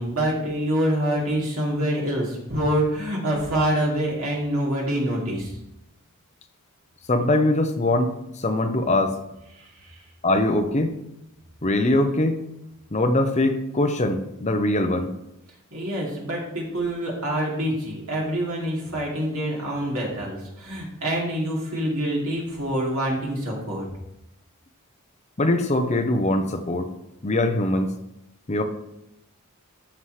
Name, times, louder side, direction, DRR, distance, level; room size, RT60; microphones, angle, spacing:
voice 1, 0.0-5.5 9.5-10.0 15.7-23.9, right 1 dB, 75° right, -3 dB, 2.8 m, -26 dB
voice 2, 7.1-9.2 10.2-10.9 11.6-12.4 12.9-15.1 25.4-26.9 27.2-27.9 28.5-28.6, left 1 dB, 30° left, 7 dB, 0.7 m, -22 dB
13.5 x 5.7 x 3.2 m, 0.87 s
head